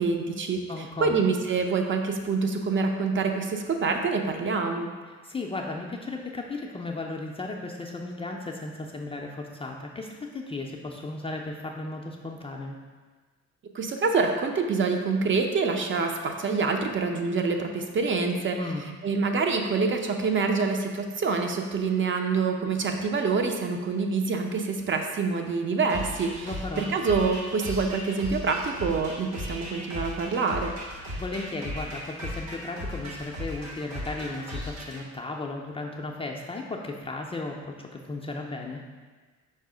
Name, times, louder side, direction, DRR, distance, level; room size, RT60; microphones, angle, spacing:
voice 1, 0.0-0.6 1.0-4.9 13.7-18.6 19.0-26.5 26.8-30.7, right 4 dB, 40° right, 4 dB, 0.5 m, -26 dB
voice 2, 0.7-1.2 5.1-12.8 18.5-18.8 26.4-26.9 31.2-38.8, left 2 dB, 20° left, -1 dB, 0.4 m, -35 dB
sound 1, 25.9-35.0, left 1 dB, 65° right, 1.1 m, -37 dB
5.4 x 2.0 x 4.8 m, 1.4 s
cardioid pair, 90°, 30 cm